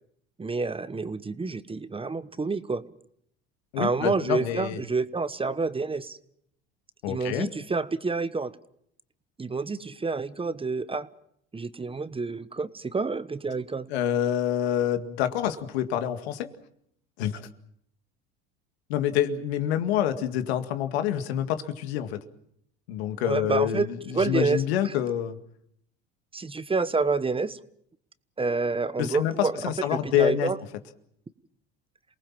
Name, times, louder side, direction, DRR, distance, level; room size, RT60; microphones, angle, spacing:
voice 1, 0.4-2.8 3.8-6.2 7.1-8.5 9.4-11.1 11.5-13.9 23.2-24.9 26.3-27.6 28.4-30.6, right 4 dB, 15° right, 15 dB, 1.1 m, -28 dB
voice 2, 3.7-4.8 7.0-7.5 13.9-16.5 17.2-17.5 18.9-22.2 22.9-23.8 24.1-25.4 29.0-30.5, left 10 dB, 85° left, 9 dB, 2.1 m, -27 dB
28.0 x 19.0 x 7.4 m, 0.72 s
supercardioid pair, 85°, 31 cm